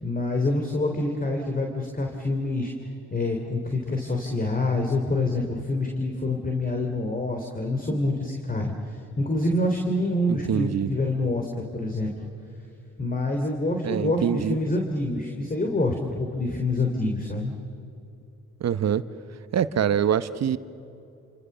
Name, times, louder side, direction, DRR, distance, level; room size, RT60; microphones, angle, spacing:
voice 1, 0.0-2.7 3.1-12.1 13.0-17.5, left 2 dB, 25° left, 3 dB, 3.5 m, -26 dB
voice 2, 10.3-10.9 13.8-14.6 18.6-19.0 19.5-20.6, right 9 dB, 55° right, 13 dB, 1.1 m, -25 dB
29.0 x 27.5 x 6.9 m, 2.7 s
supercardioid pair, 65°, 31 cm